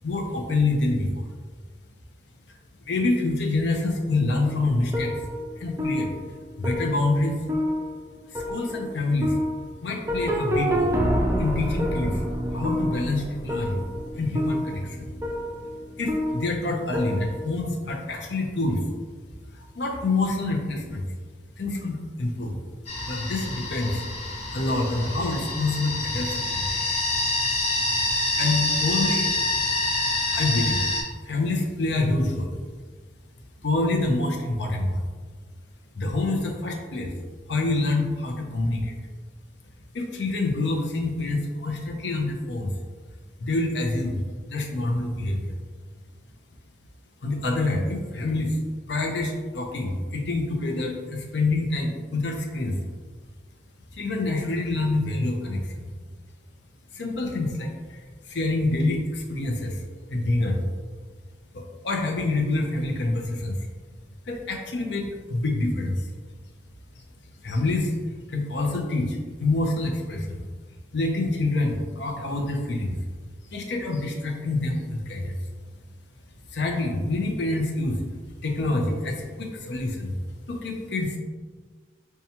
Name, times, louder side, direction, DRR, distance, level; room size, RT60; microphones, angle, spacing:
voice 1, 0.0-1.3 2.9-5.1 5.6-6.1 6.6-7.4 8.3-9.4 9.8-10.9 11.4-12.2 12.5-13.8 14.2-15.1 16.0-18.8 19.5-21.1 21.6-22.5 23.0-24.0 24.5-26.7 28.3-29.3 29.9-30.0 30.3-30.9 31.2-32.6 33.6-35.1 35.9-37.1 37.5-38.9 39.9-42.7 43.4-44.2 44.5-45.5 47.2-48.6 48.9-52.8 53.9-55.9 56.9-58.0 58.3-59.8 60.1-60.7 61.5-63.6 64.3-66.1 67.4-67.9 68.3-70.5 70.9-73.0 73.5-75.4 76.5-78.0 78.4-80.1 80.5-81.2, left 2 dB, 80° left, 2 dB, 0.5 m, -26 dB
sound 1, 4.4-17.6, equal, 15° right, 0.3 m, -28 dB
sound 2, 22.9-31.0, left 2 dB, 35° left, 0.8 m, -26 dB
5.4 x 2.2 x 2.8 m, 1.5 s
head